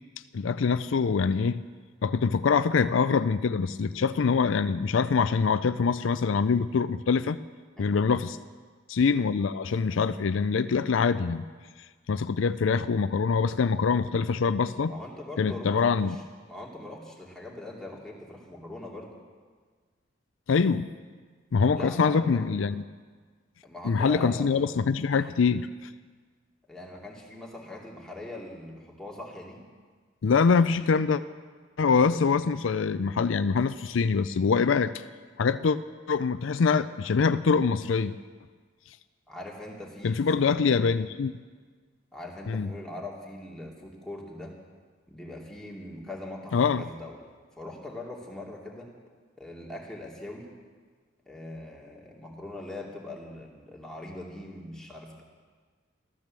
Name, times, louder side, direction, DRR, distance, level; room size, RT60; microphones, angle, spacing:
voice 1, 0.3-1.6 2.0-7.4 7.8-8.4 8.9-11.4 12.1-14.9 15.4-16.2 20.5-20.9 21.5-22.8 23.8-25.9 30.2-31.2 31.8-35.0 35.4-35.8 36.1-38.1 40.0-41.3 42.5-42.7 46.5-46.8, left 5 dB, 75° left, 13 dB, 0.4 m, -24 dB
voice 2, 14.9-16.2 16.5-19.1 21.7-22.3 23.6-24.7 26.7-29.6 31.9-32.2 39.3-40.9 42.1-44.5 45.1-47.2 47.6-48.9 49.4-50.5 51.3-55.2, left 1 dB, 5° left, -3 dB, 2.6 m, -41 dB
14.0 x 13.5 x 7.5 m, 1.5 s
head